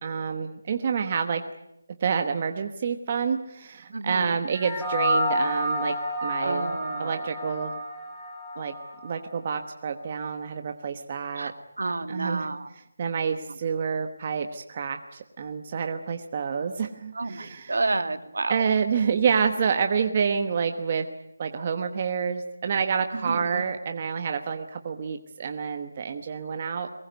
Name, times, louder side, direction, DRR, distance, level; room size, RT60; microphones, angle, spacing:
voice 1, 0.0-1.4 2.0-6.0 6.2-6.7 7.0-7.7 8.6-8.7 9.0-11.5 12.1-12.5 13.0-17.8 18.5-21.1 21.4-26.9, right 6 dB, 20° right, 6 dB, 1.1 m, -28 dB
voice 2, 3.9-4.4 6.4-7.3 11.4-11.5 11.8-12.7 17.1-18.7 23.1-23.6, right 3 dB, 65° right, 10 dB, 2.5 m, -30 dB
sound 1, 4.5-9.1, equal, ahead, 2.7 m, -29 dB
23.0 x 21.0 x 9.2 m, 0.79 s
figure-of-eight pair, 180°, 0 cm